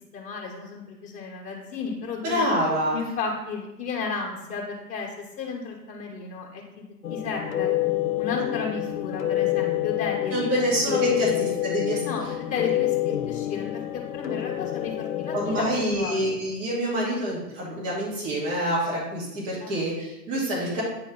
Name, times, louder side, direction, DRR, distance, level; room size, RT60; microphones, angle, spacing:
voice 1, 0.1-2.4 2.9-7.7 8.1-11.3 12.0-16.2 17.6-17.9 19.6-19.8, left 5 dB, 15° left, -2 dB, 1.2 m, -33 dB
voice 2, 2.2-3.0 10.3-12.0 15.3-20.8, right 1 dB, 50° right, -5 dB, 2.5 m, -26 dB
sound 1, 7.0-15.8, left 14 dB, 55° left, 0.7 m, -27 dB
9.2 x 3.4 x 3.8 m, 0.93 s
hypercardioid pair, 135°, 49 cm